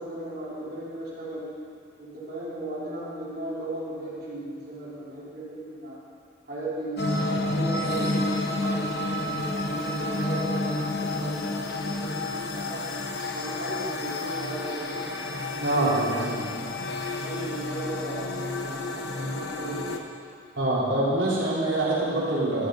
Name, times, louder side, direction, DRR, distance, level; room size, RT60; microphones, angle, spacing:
voice 1, 0.0-1.5 2.0-6.0 6.5-12.9 13.3-15.1 15.7-16.3 17.2-18.3 18.6-20.0, right 1 dB, 55° right, -8 dB, 3.8 m, -37 dB
sound 1, 7.0-20.0, left 2 dB, 60° left, 1.0 m, -30 dB
voice 2, 15.6-16.5 20.6-22.7, right 1 dB, 85° right, -7 dB, 3.7 m, -25 dB
13.5 x 13.0 x 4.0 m, 2.2 s
head